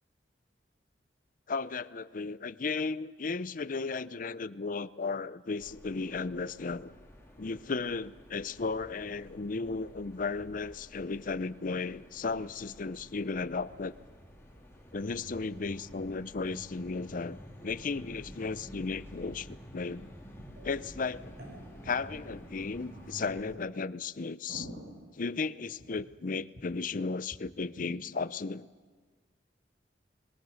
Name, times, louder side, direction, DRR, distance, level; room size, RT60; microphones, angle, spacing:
voice 1, 1.5-6.9 7.4-14.0 14.9-17.4 17.6-20.1 20.6-21.3 21.8-24.7 25.1-28.7, left 4 dB, 50° left, 16 dB, 0.6 m, -35 dB
sound 1, 5.6-23.5, equal, 15° left, 3.1 m, -50 dB
sound 2, 19.3-19.4 19.6-19.7 20.3-20.7 21.2-23.2 23.7-23.8 24.2-26.2 26.5-26.6 26.9-27.0 27.3-27.4 27.7-27.9, right 1 dB, 60° right, 5.4 m, -48 dB
25.0 x 22.0 x 6.4 m, 1.5 s
head